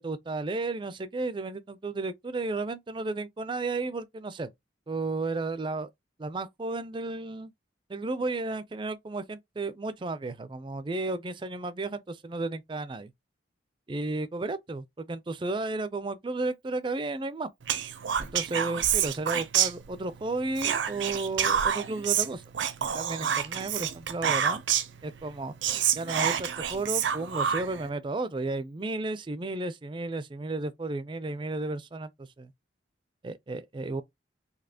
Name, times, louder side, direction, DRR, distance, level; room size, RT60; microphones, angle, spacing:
voice 1, 0.0-4.5 4.9-5.9 6.2-7.5 7.9-13.1 13.9-17.5 18.2-22.4 22.8-24.6 25.0-25.5 25.9-32.5 33.2-34.0, right 2 dB, 25° right, 0.4 m, -33 dB
Whispering, 17.7-20.2 20.6-25.0 25.3-25.4 25.6-27.9, right 8 dB, 75° right, 0.6 m, -28 dB
4.1 x 2.8 x 2.7 m
head